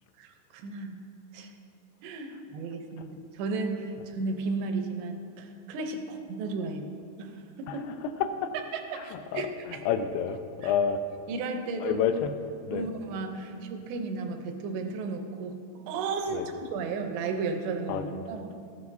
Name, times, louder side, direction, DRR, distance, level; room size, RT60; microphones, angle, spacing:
voice 1, 0.2-1.0 1.3-1.5 2.0-7.9 8.7-9.5 10.6-10.7 11.3-12.0 12.7-15.6 15.9-18.5, right 4 dB, 85° right, 4 dB, 3.0 m, -34 dB
voice 2, 8.2-8.5 9.0-11.0 11.8-12.3 12.7-12.9 16.3-16.5 17.9-18.0, left 7 dB, 85° left, 8 dB, 2.5 m, -29 dB
15.5 x 9.6 x 2.7 m, 2.4 s
omnidirectional pair, 4.8 m